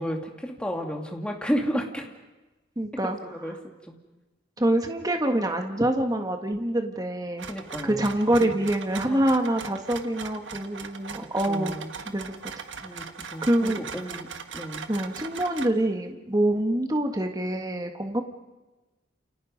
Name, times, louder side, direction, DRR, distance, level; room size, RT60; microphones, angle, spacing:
voice 1, 0.0-2.1 3.0-3.6 3.8-4.0 7.5-8.1 8.4-8.6 9.1-9.3 11.5-11.9 12.8-14.3 14.5-14.9, equal, 5° left, 2 dB, 2.4 m, -32 dB
voice 2, 2.8-3.2 4.6-7.5 7.8-11.8 12.1-12.4 13.4-13.8 14.9-18.2, right 1 dB, 20° right, 4 dB, 1.6 m, -25 dB
sound 1, 7.4-15.7, right 6 dB, 85° right, 1.5 m, -40 dB
30.0 x 28.5 x 5.3 m, 1.1 s
head